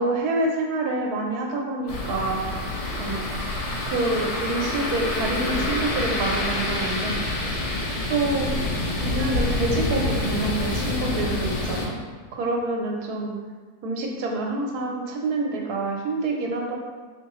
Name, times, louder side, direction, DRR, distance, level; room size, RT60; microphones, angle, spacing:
voice 1, 0.0-2.5 3.0-3.3 3.9-7.2 8.1-8.5 9.0-12.0 12.3-13.3 13.8-16.8, right 2 dB, 80° right, 0 dB, 1.2 m, -27 dB
sound 1, 1.9-11.9, left 2 dB, 80° left, 1.2 m, -27 dB
3.6 x 3.0 x 2.9 m, 1.5 s
omnidirectional pair, 1.6 m